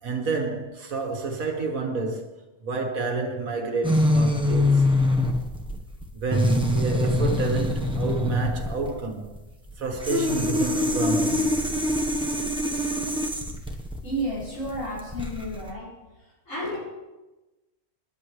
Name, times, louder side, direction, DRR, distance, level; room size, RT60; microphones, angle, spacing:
voice 1, 0.0-2.3 2.6-5.2 6.1-9.3 9.8-11.9, right 3 dB, 70° right, 1.9 m, -29 dB
sound 1, 3.8-15.7, left 1 dB, 5° right, 0.9 m, -24 dB
voice 2, 14.0-16.0 16.5-16.8, equal, 60° left, 6.4 m, -31 dB
28.0 x 11.0 x 3.3 m
omnidirectional pair, 1.5 m